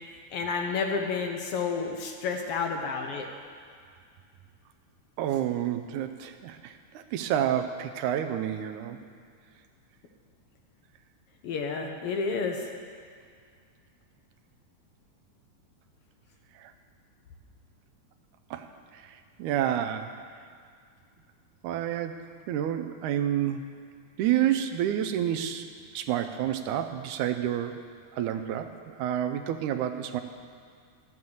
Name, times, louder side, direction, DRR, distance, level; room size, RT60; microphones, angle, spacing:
voice 1, 0.3-3.3 11.4-12.6, left 5 dB, 65° left, 3 dB, 1.5 m, -30 dB
voice 2, 5.2-9.0 16.6-16.7 18.5-18.7 18.9-20.2 21.6-22.2 22.5-23.7 24.2-27.8 28.1-30.2, right 10 dB, 90° right, 8 dB, 2.1 m, -29 dB
13.0 x 7.4 x 7.9 m, 2.2 s
omnidirectional pair, 3.5 m